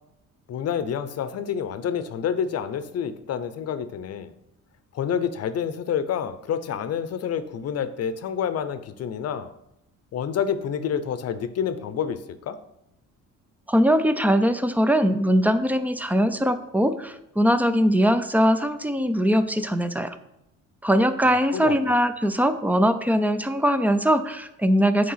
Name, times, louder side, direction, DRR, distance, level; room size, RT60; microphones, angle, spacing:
voice 1, 0.5-4.3 4.9-9.5 10.1-12.6 21.5-21.8, left 8 dB, 50° left, 13 dB, 0.8 m, -28 dB
voice 2, 13.7-20.2 20.8-25.1, equal, 5° right, 10 dB, 0.5 m, -21 dB
8.6 x 4.7 x 5.8 m, 0.84 s
cardioid pair, 125°, 31 cm